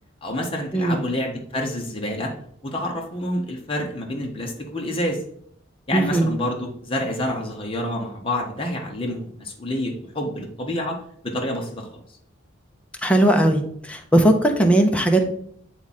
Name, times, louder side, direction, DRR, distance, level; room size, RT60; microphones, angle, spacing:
voice 1, 0.2-2.3 2.6-5.2 5.9-11.0 11.2-12.0, left 1 dB, 30° left, 0 dB, 1.1 m, -28 dB
voice 2, 5.9-6.3 13.0-13.6 13.9-15.2, right 1 dB, 5° left, 2 dB, 0.8 m, -18 dB
7.6 x 3.7 x 4.2 m, 0.66 s
head